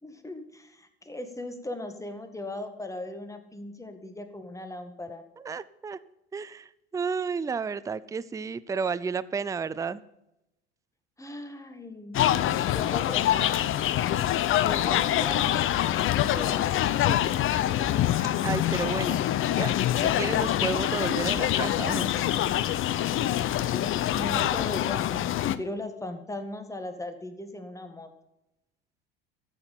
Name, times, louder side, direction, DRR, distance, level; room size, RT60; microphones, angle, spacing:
voice 1, 0.0-5.2 11.2-12.3 12.6-13.5 14.6-16.8 23.6-28.1, left 1 dB, 10° left, 7 dB, 1.9 m, -38 dB
voice 2, 5.4-6.0 6.3-10.0 17.1-17.2 17.8-17.9 18.4-19.2 19.6-22.3, right 5 dB, 10° right, 17 dB, 0.5 m, -32 dB
sound 1, 12.1-25.6, left 12 dB, 40° left, 0.7 m, -25 dB
13.5 x 7.8 x 5.8 m, 0.88 s
hypercardioid pair, 70°, 31 cm